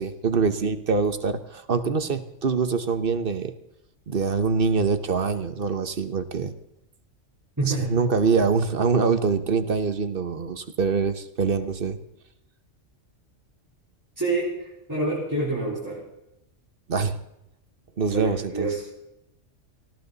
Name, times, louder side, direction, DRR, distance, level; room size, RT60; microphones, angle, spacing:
voice 1, 0.0-3.5 4.1-6.5 7.7-12.0 16.9-17.2 18.0-18.7, right 5 dB, 50° right, 11 dB, 1.2 m, -24 dB
voice 2, 7.6-8.0 14.2-16.0 18.1-18.8, right 2 dB, 15° right, -7 dB, 4.0 m, -27 dB
19.0 x 15.5 x 4.1 m, 0.85 s
omnidirectional pair, 1.3 m